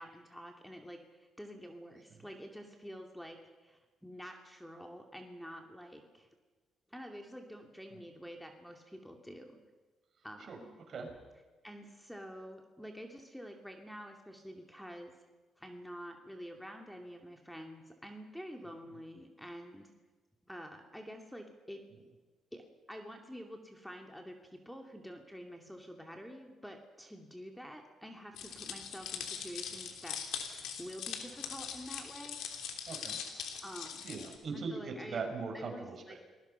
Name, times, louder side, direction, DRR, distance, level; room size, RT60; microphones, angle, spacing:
voice 1, 0.0-6.3 6.9-9.6 10.2-10.7 11.6-15.1 15.6-19.9 20.5-21.8 22.5-30.2 30.4-32.4 33.6-34.0 34.5-35.2 35.5-36.2, equal, ahead, 3 dB, 2.6 m, -48 dB
sound 1, 28.4-34.3, left 7 dB, 85° left, 3.2 m, -42 dB
voice 2, 32.9-33.2 34.0-34.8 35.1-36.2, right 4 dB, 55° right, 3 dB, 6.2 m, -39 dB
29.0 x 20.0 x 5.7 m, 1.3 s
cardioid pair, 90°, 0 cm